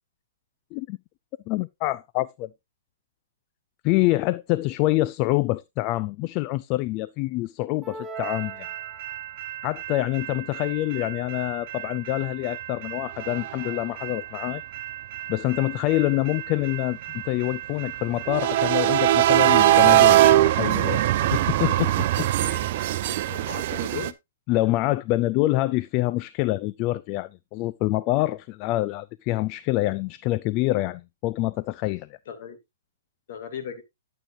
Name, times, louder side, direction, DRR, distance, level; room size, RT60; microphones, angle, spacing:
voice 1, 1.5-2.5 3.8-8.7 9.6-14.6 15.3-17.0 17.3-20.2 20.4-22.7 24.5-32.1, left 18 dB, 35° left, 0.4 m, -26 dB
sound 1, 7.8-9.5, right 5 dB, 15° right, 1.0 m, -39 dB
sound 2, 8.2-24.1, right 13 dB, 50° right, 0.7 m, -23 dB
voice 2, 23.0-24.1 32.3-32.6 33.3-33.8, left 7 dB, 55° left, 2.2 m, -37 dB
11.0 x 7.6 x 2.6 m
hypercardioid pair, 130°, 0 cm